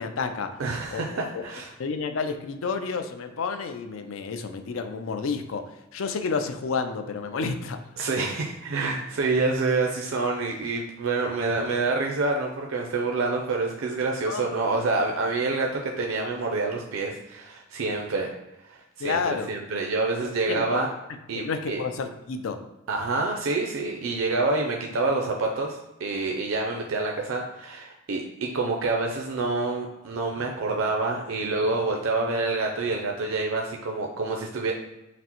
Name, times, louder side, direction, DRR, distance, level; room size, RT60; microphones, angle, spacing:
voice 1, 0.0-0.5 0.9-1.0 1.8-5.6 5.9-7.8 14.3-14.5 19.0-19.5 20.5-20.8 21.3-22.6, left 5 dB, 80° left, 7 dB, 0.4 m, -30 dB
voice 2, 0.6-1.7 8.0-18.3 18.7-20.9 21.3-21.8 22.9-34.7, right 3 dB, 80° right, 1 dB, 0.5 m, -27 dB
5.8 x 2.0 x 2.9 m, 0.94 s
head